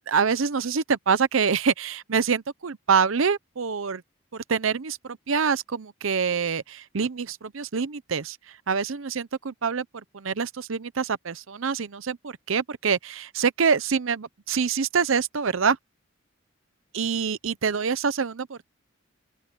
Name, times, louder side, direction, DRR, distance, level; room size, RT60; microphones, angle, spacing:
voice 1, 0.1-4.0 4.3-8.4 8.7-15.8 16.9-18.7, right 6 dB, 80° right, 0.7 m, -26 dB
open air
head